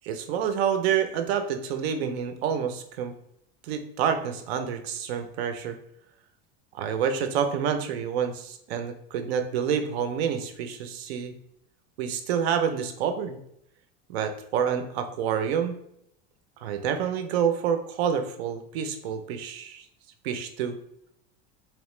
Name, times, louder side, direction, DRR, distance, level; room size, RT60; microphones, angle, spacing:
voice 1, 0.0-3.1 3.6-5.8 6.7-11.3 12.0-13.4 14.1-15.8 16.6-19.9 20.2-20.8, right 7 dB, 90° right, 7 dB, 0.6 m, -28 dB
3.6 x 2.9 x 3.1 m, 0.75 s
supercardioid pair, 145°, 30 cm